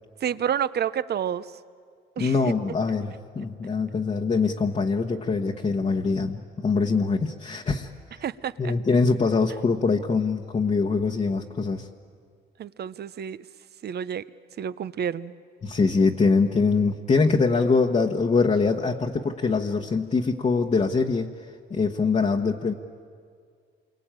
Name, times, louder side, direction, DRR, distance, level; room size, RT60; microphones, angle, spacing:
voice 1, 0.2-1.5 2.2-2.4 8.2-8.7 12.6-13.4 13.8-14.2 14.6-15.3, right 9 dB, 55° right, 15 dB, 0.8 m, -29 dB
voice 2, 2.2-7.9 8.6-11.9 15.6-21.3 21.7-22.7, left 4 dB, 35° left, 1 dB, 1.3 m, -23 dB
28.0 x 23.5 x 9.0 m, 2.1 s
cardioid pair, 90°, 20 cm